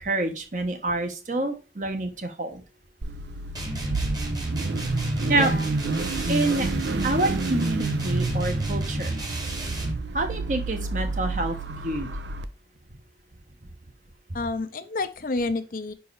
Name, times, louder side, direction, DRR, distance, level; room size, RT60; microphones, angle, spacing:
voice 1, 0.0-2.6 5.3-5.5 6.3-6.7 7.0-9.1 10.1-12.1 14.3-14.4, right 2 dB, 45° right, 5 dB, 1.0 m, -27 dB
Car / Idling / Accelerating revving vroom, 3.0-12.5, right 3 dB, 80° right, 0.6 m, -29 dB
sound 1, 3.5-10.0, equal, 20° right, 1.3 m, -31 dB
voice 2, 14.3-15.9, left 3 dB, 50° left, 11 dB, 0.5 m, -29 dB
5.3 x 4.7 x 4.6 m, 0.32 s
head